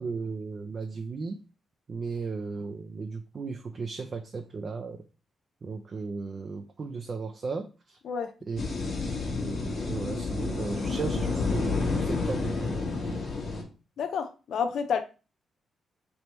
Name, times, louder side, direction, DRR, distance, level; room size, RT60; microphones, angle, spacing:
voice 1, 0.0-1.4 1.9-5.0 5.6-8.0 8.4-8.6 9.0-13.2, right 4 dB, 45° right, 0.5 m, -36 dB
sound 1, 8.6-13.6, left 4 dB, 50° left, 1.3 m, -30 dB
voice 2, 14.0-15.0, left 6 dB, 75° left, 0.4 m, -29 dB
3.4 x 2.8 x 4.4 m
cardioid pair, 80°, 0 cm